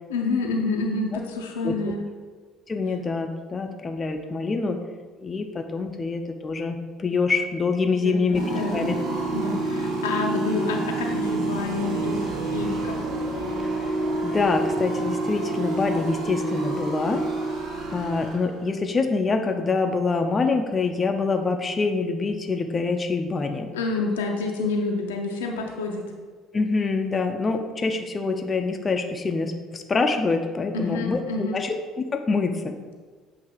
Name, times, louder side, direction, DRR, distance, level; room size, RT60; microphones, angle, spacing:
voice 1, 0.1-2.0 7.9-9.0 9.3-13.0 23.7-26.1 30.7-31.6, left 3 dB, 75° left, 2 dB, 0.6 m, -28 dB
voice 2, 2.7-4.8 5.2-8.4 8.7-9.0 13.6-13.9 14.2-17.2 17.9-23.7 26.5-31.7 32.1-33.0, left 4 dB, 30° left, 4 dB, 0.6 m, -25 dB
sound 1, 8.3-18.7, right 2 dB, 55° right, 0.9 m, -28 dB
7.8 x 2.8 x 4.9 m, 1.5 s
figure-of-eight pair, 55°, 0 cm